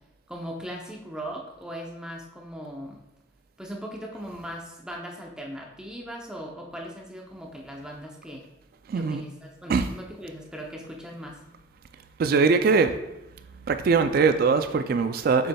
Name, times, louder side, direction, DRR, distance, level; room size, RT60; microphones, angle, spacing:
voice 1, 0.3-3.0 3.6-8.5 8.9-11.4, equal, 5° right, -1 dB, 0.6 m, -39 dB
voice 2, 8.9-9.2 9.7-9.9 12.2-13.0 13.6-15.5, right 4 dB, 50° right, 9 dB, 0.3 m, -22 dB
6.8 x 6.4 x 2.3 m, 0.88 s
head